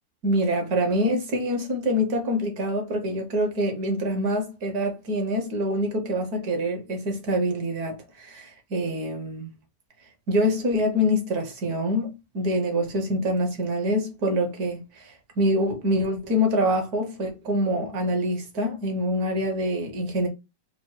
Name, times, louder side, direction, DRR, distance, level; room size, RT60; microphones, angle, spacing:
voice 1, 0.2-9.5 10.3-20.3, equal, 60° right, 1.5 m, -25 dB
4.5 x 2.1 x 4.5 m
omnidirectional pair, 2.0 m